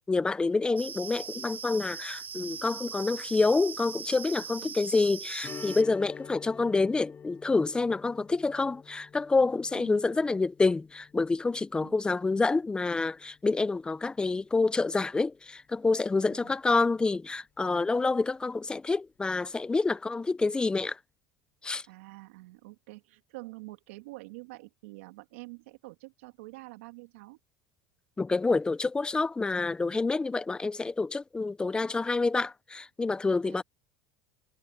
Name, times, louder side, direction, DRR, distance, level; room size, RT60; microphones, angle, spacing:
voice 1, 0.0-21.0 21.6-21.8 28.2-33.6, left 3 dB, 15° left, 0.7 m, -27 dB
sound 1, 0.8-5.8, right 7 dB, 25° right, 0.6 m, -40 dB
Strum, 5.4-14.6 14.9-15.0 17.6-17.8 18.2-18.3, left 7 dB, 30° left, 6.3 m, -49 dB
voice 2, 21.9-27.4 33.4-33.6, right 23 dB, 85° right, 2.7 m, -47 dB
supercardioid pair, 120°, 7 cm